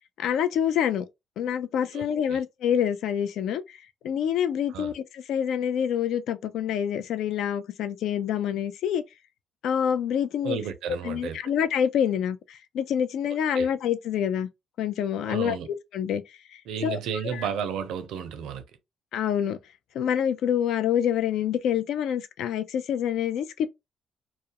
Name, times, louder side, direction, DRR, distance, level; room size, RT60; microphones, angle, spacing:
voice 1, 0.2-1.1 1.4-3.8 4.0-9.0 9.6-10.6 11.0-14.5 14.8-16.2 16.5-17.5 19.1-19.6 19.9-23.7, left 9 dB, 80° left, 0.4 m, -27 dB
voice 2, 1.9-2.4 4.7-4.9 10.4-11.4 13.6-13.7 15.3-15.7 16.7-18.6, right 7 dB, 85° right, 0.5 m, -32 dB
2.3 x 2.0 x 2.8 m
cardioid pair, 90°, 0 cm